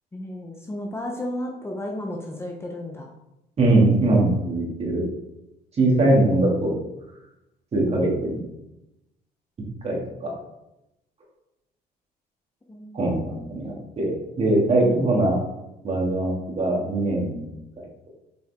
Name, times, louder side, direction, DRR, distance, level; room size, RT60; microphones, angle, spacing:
voice 1, 0.1-3.1 12.7-13.1 14.8-15.0, left 1 dB, 15° left, 1 dB, 0.8 m, -33 dB
voice 2, 3.6-5.1 5.8-6.7 7.7-8.4 9.8-10.3 12.9-15.4 15.8-17.5 17.8-17.9, right 2 dB, 40° right, -3 dB, 2.5 m, -21 dB
7.1 x 4.9 x 3.7 m, 0.91 s
cardioid pair, 110°, 17 cm